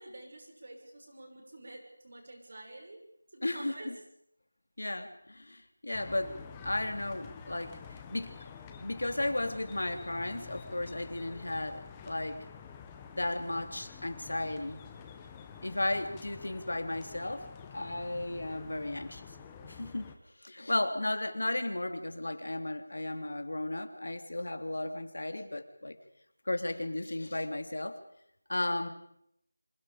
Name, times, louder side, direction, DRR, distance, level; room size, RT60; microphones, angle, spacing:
voice 1, 0.0-3.0 3.3-3.9, right 1 dB, 40° right, 2 dB, 6.4 m, -48 dB
voice 2, 3.4-4.0 4.8-6.4 6.6-8.3 8.8-12.4 13.1-14.8 15.6-19.2 19.6-20.1 20.4-26.0 26.5-28.0 28.5-28.9, left 1 dB, 75° left, 7 dB, 3.3 m, -34 dB
sound 1, 5.9-20.2, left 6 dB, 10° left, 1.0 m, -49 dB
28.0 x 26.5 x 5.2 m, 0.74 s
figure-of-eight pair, 180°, 0 cm